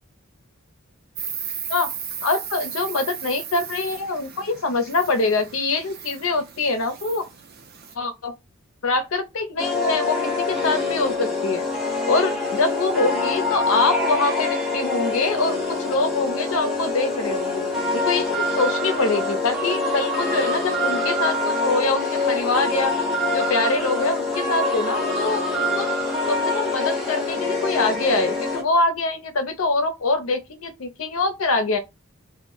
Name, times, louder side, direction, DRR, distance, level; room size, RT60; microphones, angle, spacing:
Insect, 1.2-7.9, right 7 dB, 45° right, 0.5 m, -36 dB
voice 1, 2.2-7.3 8.0-8.3 8.8-11.7 12.1-17.7 17.9-22.9 23.3-25.9 26.3-31.8, left 3 dB, 70° left, 0.5 m, -24 dB
sound 1, 9.6-28.6, left 2 dB, ahead, 0.7 m, -25 dB
2.2 x 2.0 x 3.6 m
head